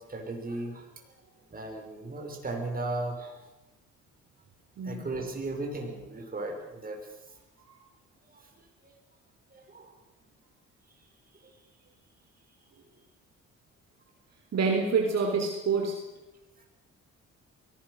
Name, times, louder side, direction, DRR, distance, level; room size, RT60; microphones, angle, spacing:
voice 1, 0.1-0.8 1.5-3.4 4.8-7.0 9.5-9.9, right 2 dB, 30° right, 2 dB, 6.0 m, -35 dB
voice 2, 14.5-16.0, right 4 dB, 55° right, 2 dB, 3.9 m, -27 dB
23.5 x 18.5 x 6.7 m, 1.0 s
cardioid pair, 90°, 30 cm